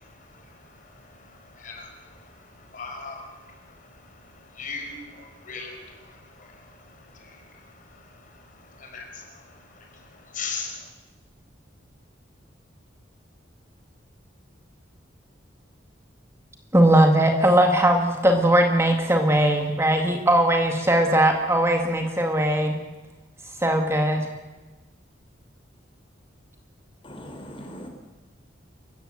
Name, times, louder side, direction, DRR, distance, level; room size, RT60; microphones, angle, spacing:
voice 1, 0.0-10.9, left 4 dB, 45° left, 3 dB, 5.0 m, -41 dB
voice 2, 16.7-22.8 23.6-24.3, right 1 dB, 15° right, 3 dB, 2.0 m, -19 dB
voice 3, 27.0-27.9, equal, 30° left, 5 dB, 4.2 m, -40 dB
28.0 x 15.5 x 7.8 m, 1.2 s
head